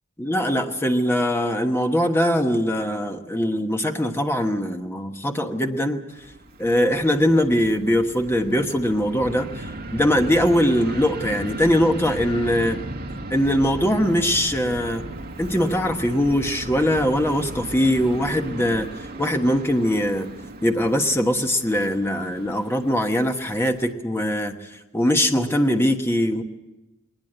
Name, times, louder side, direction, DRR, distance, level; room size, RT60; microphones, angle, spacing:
voice 1, 0.2-6.0 6.6-12.8 13.3-15.0 15.4-18.9 19.2-20.3 20.6-24.6 24.9-26.4, equal, 10° left, 4 dB, 1.3 m, -21 dB
Fixed-wing aircraft airplane, 6.1-23.9, right 1 dB, 45° right, 1.9 m, -36 dB
20.0 x 20.0 x 8.0 m, 1.0 s
head